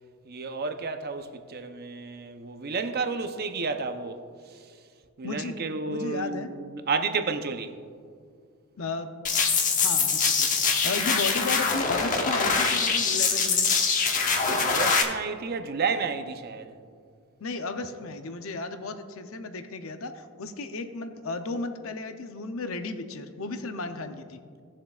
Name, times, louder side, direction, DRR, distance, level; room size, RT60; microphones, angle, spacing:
voice 1, 0.2-4.2 4.5-4.7 5.2-7.8 14.6-16.7, right 4 dB, 50° right, 0.7 m, -31 dB
voice 2, 5.2-5.5 5.9-6.5 8.8-9.1 9.7-10.5 10.8-13.7 17.4-24.4, left 3 dB, 70° left, 0.6 m, -34 dB
sound 1, 9.2-15.0, left 5 dB, 40° left, 1.0 m, -24 dB
17.5 x 7.3 x 2.4 m
head